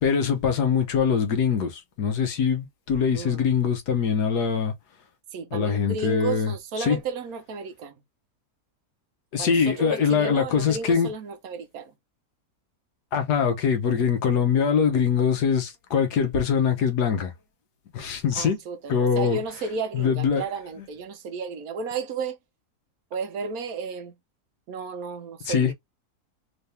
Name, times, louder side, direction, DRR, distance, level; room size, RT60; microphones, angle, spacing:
voice 1, 0.0-4.7 5.5-7.0 9.3-11.1 13.1-17.3 17.9-18.6 18.9-19.4 19.9-20.4 25.5-25.7, left 6 dB, 80° left, 1.5 m, -23 dB
voice 2, 3.1-3.4 5.3-7.9 9.4-11.9 18.3-22.4 23.1-24.1 24.7-25.7, right 4 dB, 70° right, 1.1 m, -33 dB
3.8 x 3.4 x 2.7 m
omnidirectional pair, 1.7 m